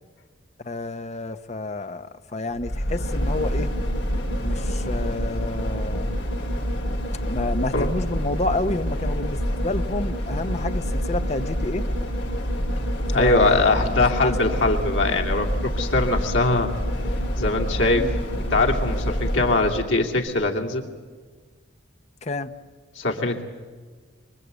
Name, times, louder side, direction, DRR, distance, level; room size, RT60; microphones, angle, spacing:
voice 1, 0.6-3.7 4.4-6.1 7.3-11.8 13.1-14.3 17.9-18.1 22.2-22.5, left 2 dB, 35° left, 10 dB, 0.9 m, -29 dB
sound 1, 2.6-19.9 20.3-20.4, equal, 65° left, 4.9 m, -27 dB
voice 2, 13.1-16.7 17.4-18.0 18.5-20.8 22.9-23.4, left 2 dB, 90° left, 1 dB, 2.6 m, -22 dB
25.5 x 24.5 x 8.2 m, 1.5 s
head